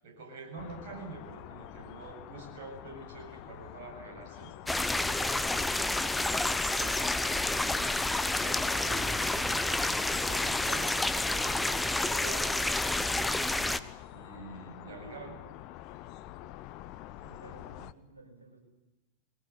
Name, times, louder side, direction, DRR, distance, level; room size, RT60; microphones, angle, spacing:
voice 1, 0.0-4.5 5.0-5.8 6.1-10.9 11.3-13.8 14.1-15.4, right 3 dB, 55° right, 3 dB, 7.7 m, -47 dB
sound 1, 0.6-17.9, left 14 dB, 40° left, 0.9 m, -47 dB
sound 2, 4.7-13.8, left 2 dB, 5° left, 1.0 m, -29 dB
voice 2, 17.2-18.6, right 3 dB, 80° right, 1 dB, 6.6 m, -53 dB
21.5 x 19.0 x 10.0 m, 1.0 s
figure-of-eight pair, 90°, 0 cm